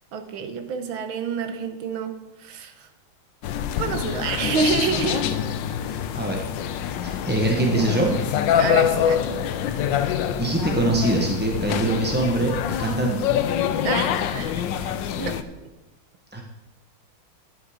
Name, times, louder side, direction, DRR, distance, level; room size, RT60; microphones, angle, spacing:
voice 1, 0.1-2.1 2.4-2.9 3.8-5.2 8.6-9.4 10.0-10.2 13.8-15.4, right 5 dB, 75° right, 8 dB, 1.8 m, -28 dB
sound 1, 3.4-15.4, left 9 dB, 70° left, 1.3 m, -25 dB
voice 2, 5.9-6.5 7.0-8.2 10.4-13.3 16.3-16.4, right 2 dB, 10° right, 0 dB, 0.5 m, -23 dB
11.0 x 9.9 x 5.0 m, 1.1 s
omnidirectional pair, 2.3 m